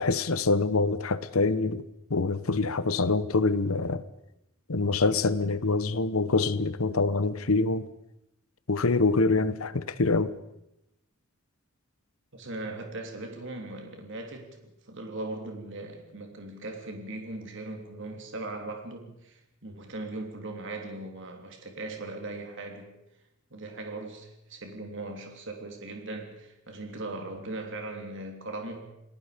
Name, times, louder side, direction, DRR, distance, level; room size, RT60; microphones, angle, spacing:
voice 1, 0.0-4.0 4.7-7.9 8.7-10.3, left 3 dB, 85° left, 1.0 m, -25 dB
voice 2, 12.3-22.9 23.5-28.9, right 2 dB, 60° right, 3.3 m, -39 dB
29.0 x 19.0 x 5.2 m
head